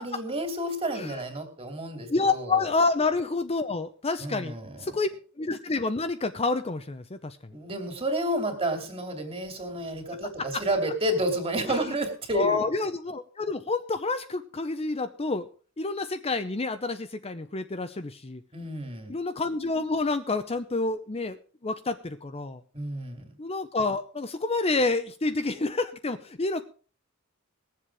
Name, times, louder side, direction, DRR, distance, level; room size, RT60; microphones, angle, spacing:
voice 1, 0.0-2.6 4.2-5.0 7.5-12.7 18.5-19.1 22.7-23.3, right 1 dB, 25° right, 5 dB, 2.9 m, -30 dB
voice 2, 2.1-5.1 5.4-7.5 10.4-10.6 11.7-11.8 12.3-15.5 15.8-18.4 19.1-21.4 21.6-22.6 23.4-26.6, left 3 dB, 30° left, 10 dB, 0.7 m, -28 dB
20.0 x 7.6 x 4.8 m, 0.39 s
head